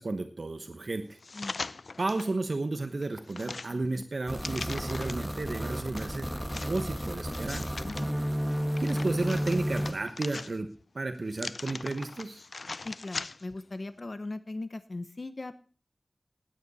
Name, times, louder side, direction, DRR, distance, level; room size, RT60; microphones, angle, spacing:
voice 1, 0.0-1.2 2.0-6.3 6.7-7.7 8.8-10.7 10.9-12.4, right 2 dB, 65° right, 8 dB, 1.0 m, -33 dB
sound 1, 1.2-2.3 2.8-5.4 6.0-8.1 8.5-10.8 11.3-13.6 14.0-14.1, left 3 dB, 75° left, 0.5 m, -41 dB
sound 2, 4.3-9.9, equal, ahead, 1.4 m, -32 dB
voice 2, 12.8-15.6, left 2 dB, 50° left, 12 dB, 0.8 m, -39 dB
17.0 x 9.6 x 4.1 m, 0.40 s
wide cardioid pair, 75°, 0 cm